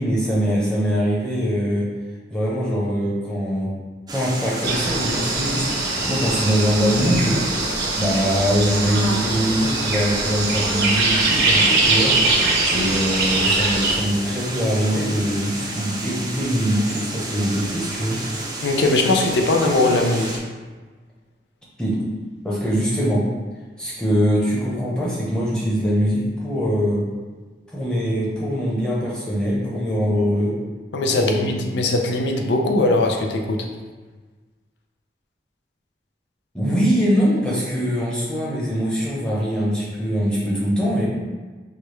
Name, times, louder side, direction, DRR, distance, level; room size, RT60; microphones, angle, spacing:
voice 1, 0.0-1.9 2.3-3.7 4.1-7.4 7.9-12.2 12.7-18.2 21.8-22.0 22.4-23.2 23.8-27.0 27.7-30.5 31.1-31.8 36.5-41.1, equal, 5° left, -6 dB, 0.8 m, -22 dB
sound 1, 4.1-20.4, right 2 dB, 25° right, 0.5 m, -31 dB
sound 2, 4.6-14.0, right 3 dB, 65° right, 0.8 m, -22 dB
voice 2, 18.6-20.4 30.9-33.6, left 2 dB, 80° left, 3 dB, 0.5 m, -20 dB
4.7 x 2.3 x 3.2 m, 1.3 s
head